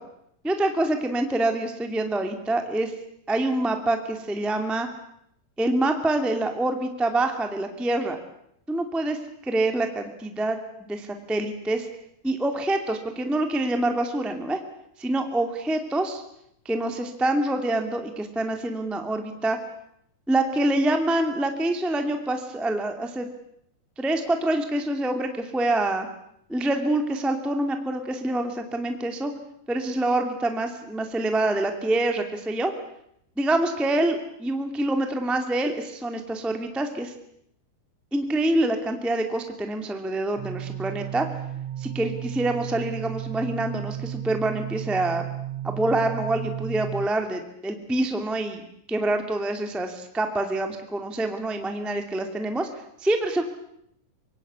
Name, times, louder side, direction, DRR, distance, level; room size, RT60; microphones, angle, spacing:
voice 1, 0.4-2.9 3.3-4.9 5.6-8.2 8.7-11.9 12.2-14.6 15.0-16.2 16.6-19.6 20.3-23.3 24.0-26.1 26.5-29.3 29.7-32.7 33.4-37.1 38.1-41.3 41.8-45.2 45.6-48.6 48.9-52.7 53.0-53.4, right 2 dB, ahead, 5 dB, 1.7 m, -26 dB
sound 1, 40.4-47.1, right 12 dB, 65° right, 1.7 m, -34 dB
25.5 x 23.5 x 8.3 m, 0.74 s
omnidirectional pair, 4.3 m